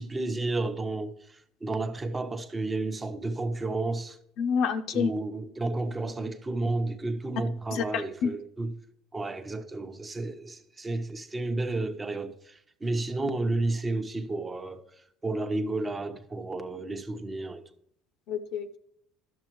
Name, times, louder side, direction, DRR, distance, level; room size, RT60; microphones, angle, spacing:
voice 1, 0.0-4.2 4.9-8.7 9.1-14.8 15.2-17.6, right 2 dB, 20° right, 0.8 m, -32 dB
voice 2, 4.4-5.1 7.7-8.3 18.3-18.8, left 6 dB, 65° left, 0.6 m, -28 dB
12.0 x 6.6 x 3.1 m
supercardioid pair, 105°, 0 cm